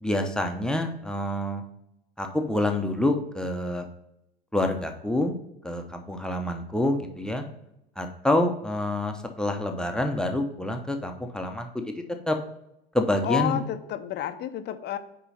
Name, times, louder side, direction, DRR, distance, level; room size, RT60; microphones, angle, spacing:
voice 1, 0.0-1.6 2.2-3.9 4.5-5.3 5.6-7.4 8.0-12.4 12.9-13.6, left 1 dB, 5° left, 4 dB, 0.8 m, -27 dB
voice 2, 13.2-15.0, left 11 dB, 35° left, 10 dB, 0.7 m, -30 dB
6.8 x 4.7 x 4.1 m, 0.84 s
figure-of-eight pair, 80°, 29 cm